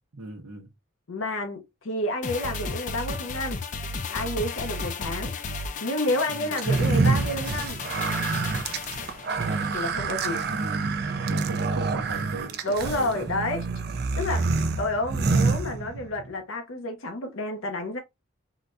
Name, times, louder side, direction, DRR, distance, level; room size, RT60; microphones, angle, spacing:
voice 1, 0.1-0.7 6.3-6.5 10.4-10.9 11.2-13.2, right 3 dB, 90° right, 0.8 m, -37 dB
voice 2, 1.1-3.6 4.1-5.3 5.8-7.8 9.7-10.5 12.6-18.0, left 1 dB, 75° left, 0.6 m, -30 dB
sound 1, 2.2-10.8 11.1-11.2, left 4 dB, 35° left, 0.4 m, -35 dB
sound 2, 6.6-16.3, right 4 dB, 50° right, 0.4 m, -27 dB
3.8 x 2.1 x 2.5 m
head